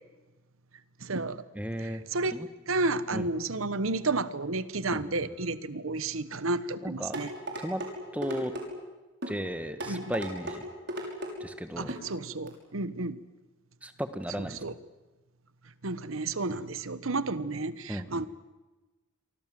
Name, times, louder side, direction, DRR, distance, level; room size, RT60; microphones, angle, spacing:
voice 1, 1.0-1.4 1.8-2.4 2.7-7.3 9.9-10.1 11.8-13.2 14.6-14.7 15.8-18.3, right 3 dB, 90° right, 15 dB, 1.2 m, -31 dB
voice 2, 1.5-2.0 2.3-2.5 3.1-3.3 4.9-5.3 6.8-7.2 7.6-7.8 8.1-8.5 9.3-10.6 11.4-11.9 13.8-14.6 17.9-18.1, equal, 5° right, 9 dB, 1.5 m, -35 dB
sound 1, 7.1-7.9 8.2-8.7 9.2-9.4 9.8-10.6 10.9-11.3 11.9-12.1 12.5-12.6, right 1 dB, 55° right, 6.0 m, -35 dB
27.5 x 24.0 x 7.7 m, 1.2 s
head